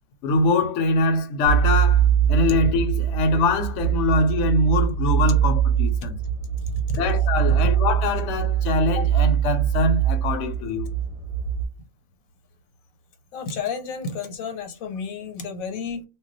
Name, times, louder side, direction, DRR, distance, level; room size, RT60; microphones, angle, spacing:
voice 1, 0.2-6.2 7.0-10.9, left 2 dB, 65° left, 0.8 m, -23 dB
sound 1, 1.4-11.6, right 9 dB, 55° right, 0.6 m, -22 dB
voice 2, 13.3-16.0, left 5 dB, 85° left, 1.1 m, -31 dB
2.2 x 2.2 x 3.8 m
omnidirectional pair, 1.4 m